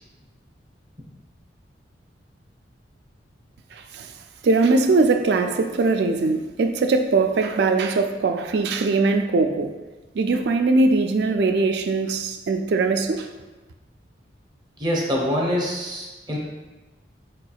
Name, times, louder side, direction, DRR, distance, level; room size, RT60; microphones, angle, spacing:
voice 1, 3.7-4.1 4.4-9.7 10.1-13.3, right 3 dB, 60° right, 6 dB, 0.3 m, -21 dB
voice 2, 14.8-16.4, equal, 25° right, -2 dB, 0.7 m, -25 dB
4.8 x 4.4 x 2.3 m, 1.2 s
head